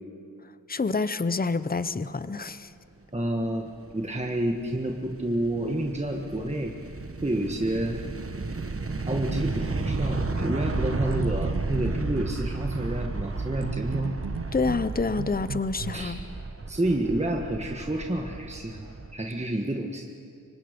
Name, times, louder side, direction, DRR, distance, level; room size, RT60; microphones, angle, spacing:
voice 1, 0.7-2.7 14.5-16.2, left 4 dB, 25° left, 14 dB, 0.7 m, -27 dB
voice 2, 3.1-6.7 7.2-8.0 9.1-14.2 15.9-16.2 16.7-20.0, right 1 dB, 20° right, 1 dB, 1.5 m, -29 dB
sound 1, 3.6-19.1, right 3 dB, 40° right, 1.1 m, -33 dB
sound 2, 10.9-12.4 13.6-15.9, right 6 dB, 80° right, 0.8 m, -37 dB
25.5 x 24.5 x 5.2 m, 2.5 s
wide cardioid pair, 80°, 34 cm